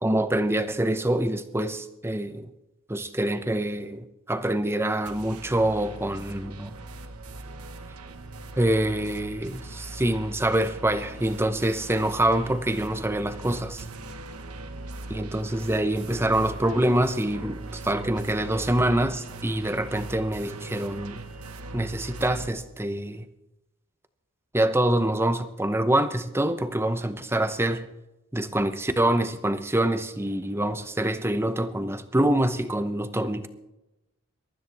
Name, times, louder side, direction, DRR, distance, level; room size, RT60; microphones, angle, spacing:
voice 1, 0.0-2.5 2.9-6.7 8.6-13.8 15.1-21.2 21.7-23.2 24.5-27.8 28.3-33.5, right 1 dB, 10° right, 0.8 m, -25 dB
sound 1, 5.1-22.5, right 2 dB, 85° right, 1.3 m, -40 dB
22.5 x 13.0 x 3.4 m
head